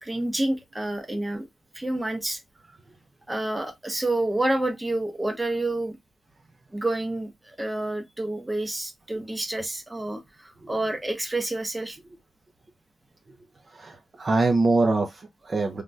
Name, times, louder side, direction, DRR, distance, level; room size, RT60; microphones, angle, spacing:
voice 1, 0.0-1.5 1.7-2.4 3.3-6.0 6.7-12.0, right 2 dB, 15° right, 0.7 m, -28 dB
voice 2, 13.7-15.8, right 3 dB, 45° right, 0.6 m, -24 dB
3.3 x 2.2 x 2.6 m
cardioid pair, 100°, 0 cm